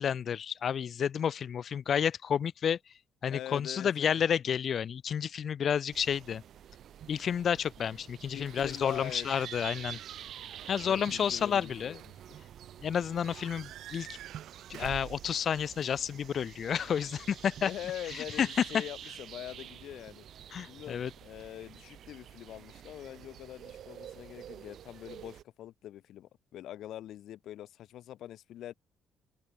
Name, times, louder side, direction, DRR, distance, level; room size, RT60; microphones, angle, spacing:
voice 1, 0.0-2.8 3.2-6.4 7.1-10.0 10.7-12.0 12.8-14.1 14.7-17.7 18.1-18.5 20.5-21.1, left 8 dB, 50° left, 0.5 m, -30 dB
voice 2, 3.3-4.2 8.3-9.3 10.8-12.2 17.6-20.3 20.7-28.7, left 12 dB, 70° left, 2.5 m, -44 dB
sound 1, 5.9-25.4, right 10 dB, 60° right, 5.5 m, -49 dB
Slam / Squeak / Alarm, 8.5-16.4, right 13 dB, 80° right, 1.0 m, -48 dB
cardioid pair, 105°, 0 cm